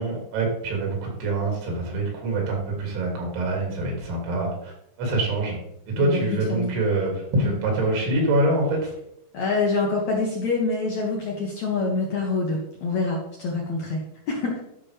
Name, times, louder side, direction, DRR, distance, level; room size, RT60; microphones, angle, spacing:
voice 1, 0.0-4.7 5.0-5.6 5.9-8.8, right 2 dB, 75° right, 0 dB, 4.9 m, -25 dB
voice 2, 6.0-6.7 7.4-7.6 9.3-14.0 14.3-14.5, left 3 dB, 70° left, -2 dB, 1.7 m, -26 dB
12.5 x 6.0 x 3.4 m, 0.76 s
omnidirectional pair, 5.4 m